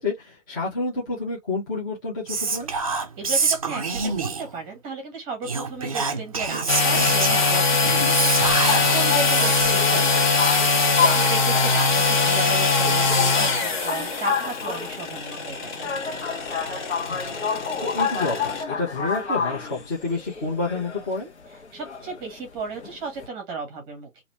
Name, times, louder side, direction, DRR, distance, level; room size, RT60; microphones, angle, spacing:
voice 1, 0.0-2.7 9.9-10.0 17.1-17.4 17.8-21.3, left 3 dB, 15° left, 0.7 m, -29 dB
Whispering, 2.3-4.6 5.4-9.9, right 4 dB, 30° right, 0.5 m, -27 dB
voice 2, 3.2-10.5 11.0-15.9 21.7-24.2, right 4 dB, 10° right, 1.0 m, -34 dB
sound 1, 6.7-18.6, left 4 dB, 35° left, 1.2 m, -22 dB
sound 2, 8.4-23.3, left 5 dB, 60° left, 1.2 m, -30 dB
3.0 x 2.6 x 2.9 m
figure-of-eight pair, 145°, 38 cm